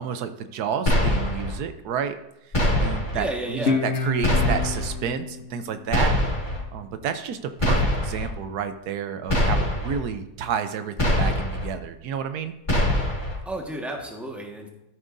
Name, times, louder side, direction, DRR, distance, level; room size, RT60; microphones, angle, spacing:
voice 1, 0.0-2.2 2.4-6.1 6.7-12.5, right 7 dB, 80° right, 9 dB, 1.2 m, -30 dB
sound 1, 0.9-1.5 2.5-3.2 4.2-4.9 5.9-6.6 7.6-8.3 9.3-10.0 11.0-11.7 12.7-13.4, left 1 dB, 30° left, 2.2 m, -23 dB
voice 2, 3.1-3.8 13.4-14.7, right 1 dB, ahead, 0 dB, 1.3 m, -32 dB
Guitar, 3.7-6.9, left 4 dB, 55° left, 1.0 m, -29 dB
13.5 x 9.1 x 2.6 m, 0.87 s
omnidirectional pair, 1.7 m